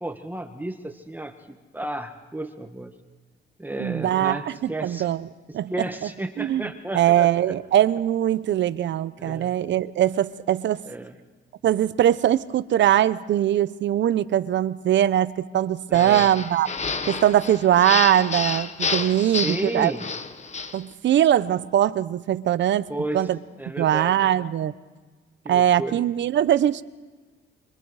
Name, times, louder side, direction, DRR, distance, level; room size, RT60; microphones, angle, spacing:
voice 1, 0.0-2.9 3.6-5.1 5.7-7.5 9.2-9.6 10.9-11.1 15.9-16.3 19.1-20.1 22.9-23.3 23.6-24.1 25.4-26.0, right 1 dB, 10° right, 5 dB, 1.6 m, -33 dB
voice 2, 3.8-5.3 5.5-6.1 6.4-6.7 6.9-10.8 11.6-16.7 17.1-19.9 20.7-22.8 23.1-23.4 23.8-24.7 25.5-26.8, right 11 dB, 65° right, 15 dB, 0.8 m, -21 dB
sound 1, 15.9-20.8, left 4 dB, 35° left, 1.5 m, -30 dB
25.0 x 25.0 x 4.9 m, 1.3 s
cardioid pair, 90°, 20 cm